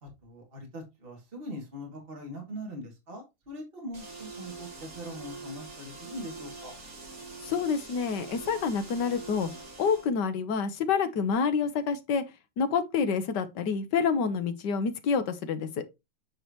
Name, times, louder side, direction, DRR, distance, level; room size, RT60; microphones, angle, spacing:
voice 1, 0.0-6.7, equal, 30° right, 2.5 m, -42 dB
sound 1, 3.9-10.1, right 3 dB, 45° right, 2.7 m, -44 dB
voice 2, 7.4-9.5 9.8-12.2 12.6-15.8, left 6 dB, 65° left, 1.6 m, -28 dB
9.1 x 4.9 x 3.0 m
omnidirectional pair, 2.1 m